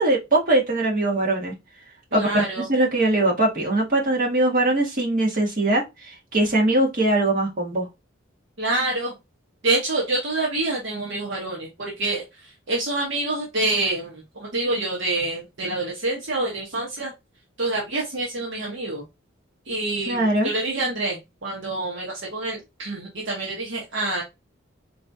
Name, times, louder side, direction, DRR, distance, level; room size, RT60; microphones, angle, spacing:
voice 1, 0.0-1.5 2.1-2.4 2.7-7.9 20.1-20.5, right 2 dB, 45° right, 1.8 m, -21 dB
voice 2, 2.1-2.7 8.6-9.1 9.6-12.2 12.7-17.1 17.6-19.0 19.7-24.2, right 2 dB, 65° right, 1.2 m, -27 dB
4.2 x 3.2 x 2.7 m
head